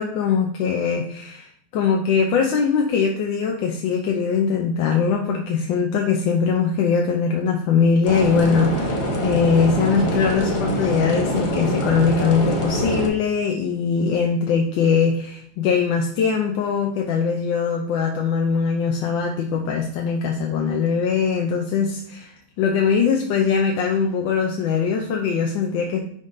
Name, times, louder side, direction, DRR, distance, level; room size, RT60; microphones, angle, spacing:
voice 1, 0.0-26.0, left 6 dB, 85° left, 2 dB, 1.4 m, -21 dB
sound 1, 8.0-13.1, equal, 25° left, 0.7 m, -24 dB
10.5 x 3.7 x 2.6 m, 0.69 s
omnidirectional pair, 2.0 m